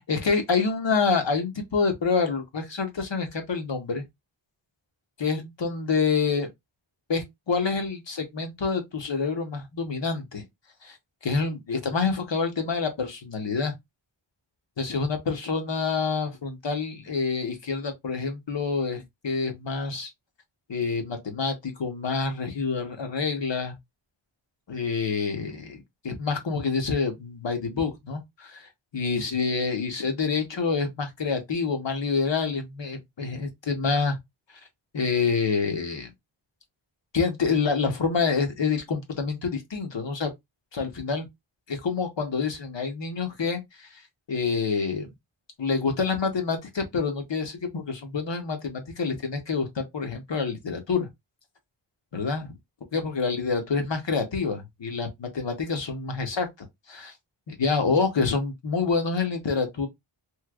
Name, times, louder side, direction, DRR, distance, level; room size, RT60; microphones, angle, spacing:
voice 1, 0.1-4.0 5.2-6.5 7.1-10.5 10.8-11.0 11.2-13.7 14.8-20.1 20.7-23.7 24.7-34.2 34.9-36.1 37.1-40.3 40.7-41.3 41.7-44.0 44.3-45.1 45.6-51.1 52.1-52.5 52.9-56.5 56.9-57.1 57.5-59.9, left 5 dB, 60° left, 1.0 m, -27 dB
3.2 x 2.9 x 2.3 m
wide cardioid pair, 60°, 50 cm